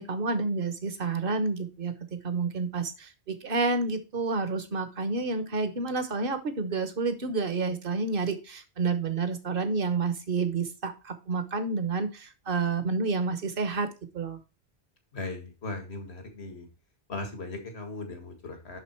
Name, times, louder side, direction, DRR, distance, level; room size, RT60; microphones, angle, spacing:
voice 1, 0.0-13.9 14.1-14.4, right 4 dB, 60° right, 10 dB, 1.3 m, -29 dB
voice 2, 15.1-16.7 17.1-18.8, left 2 dB, 80° left, 5 dB, 2.0 m, -38 dB
10.5 x 4.0 x 4.4 m, 0.30 s
omnidirectional pair, 1.1 m